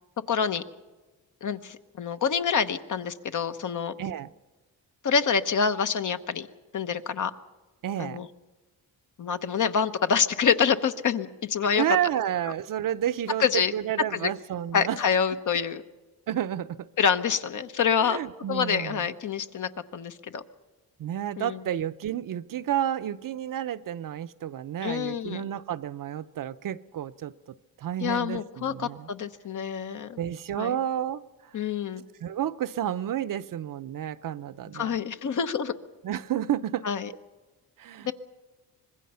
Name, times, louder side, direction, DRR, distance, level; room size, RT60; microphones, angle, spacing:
voice 1, 0.3-0.6 1.4-3.9 5.0-6.5 6.7-7.3 8.0-8.3 9.2-11.8 13.4-13.7 14.1-14.3 14.7-15.8 17.0-18.2 18.5-20.4 21.4-21.6 24.8-25.5 28.0-30.2 30.6-30.8 31.5-32.0 34.7-35.7 36.8-37.1 38.0-38.1, left 6 dB, 55° left, 9 dB, 1.1 m, -26 dB
voice 2, 4.0-4.3 7.8-8.3 11.7-15.0 16.3-16.9 18.0-19.0 21.0-27.3 27.8-29.1 30.2-31.2 32.2-34.9 36.0-36.8 37.8-38.1, right 11 dB, 60° right, 12 dB, 0.7 m, -30 dB
25.0 x 21.0 x 5.7 m, 1.2 s
cardioid pair, 110°, 36 cm